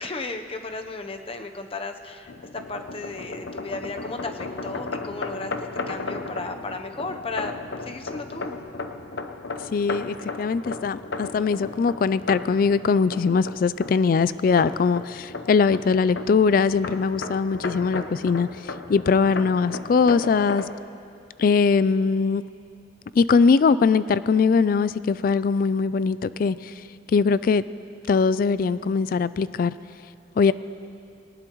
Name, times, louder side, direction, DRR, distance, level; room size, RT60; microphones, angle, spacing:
voice 1, 0.0-7.5 7.9-8.6, left 3 dB, 30° left, 6 dB, 0.8 m, -34 dB
sound 1, 2.3-20.7, left 3 dB, 70° left, 0.8 m, -35 dB
voice 2, 9.7-20.6 21.4-22.4 23.1-26.8 27.1-27.6 28.1-29.7 30.4-30.5, left 5 dB, 50° left, 16 dB, 0.3 m, -21 dB
19.0 x 19.0 x 3.1 m, 2.4 s
head